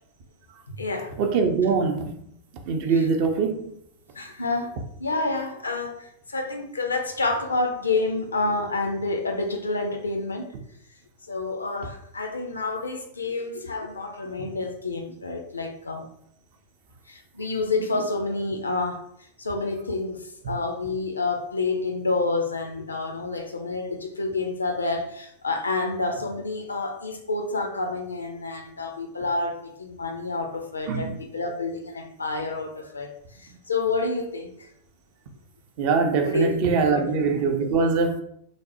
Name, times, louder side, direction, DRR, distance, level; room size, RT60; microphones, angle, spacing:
voice 1, 0.7-1.2 2.9-3.1 4.2-10.5 11.3-16.1 17.1-19.0 19.4-20.2 20.4-33.1 33.7-34.7 36.2-37.1, left 3 dB, 75° left, 0.4 m, -28 dB
voice 2, 1.2-2.1 2.7-3.7 30.9-31.0 35.8-38.2, right 5 dB, 45° right, 0.4 m, -22 dB
3.3 x 2.0 x 2.6 m
figure-of-eight pair, 90°, 0 cm